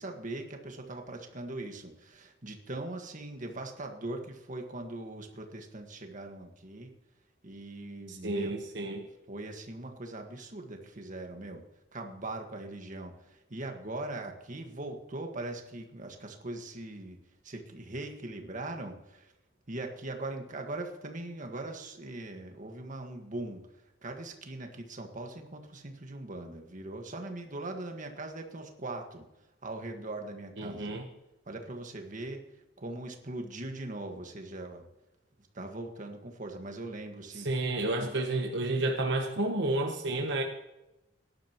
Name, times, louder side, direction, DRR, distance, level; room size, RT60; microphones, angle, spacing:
voice 1, 0.0-6.9 7.4-8.5 9.3-11.6 11.9-17.2 17.4-19.3 19.7-23.6 24.0-29.2 29.6-30.9 31.4-32.4 32.8-34.8 35.5-37.5, right 2 dB, 45° right, 4 dB, 1.7 m, -40 dB
voice 2, 8.1-9.0 30.6-31.1 37.3-40.4, right 2 dB, 65° right, 3 dB, 1.1 m, -31 dB
17.5 x 11.5 x 3.0 m, 0.94 s
head